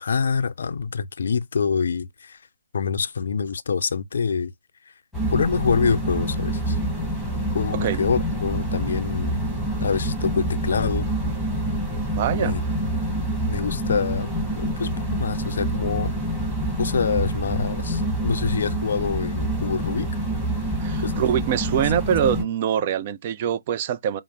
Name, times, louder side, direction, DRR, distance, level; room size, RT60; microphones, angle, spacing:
voice 1, 0.0-2.4 2.7-4.5 4.9-5.0 5.3-6.8 7.5-9.4 9.8-11.1 12.3-12.6 13.5-16.1 16.8-20.1 21.0-21.2, left 5 dB, 60° left, 0.4 m, -26 dB
sound 1, 5.1-22.4, right 1 dB, ahead, 1.4 m, -27 dB
voice 2, 12.1-12.5 20.8-24.2, right 9 dB, 35° right, 0.4 m, -24 dB
4.7 x 2.0 x 2.8 m
figure-of-eight pair, 145°, 0 cm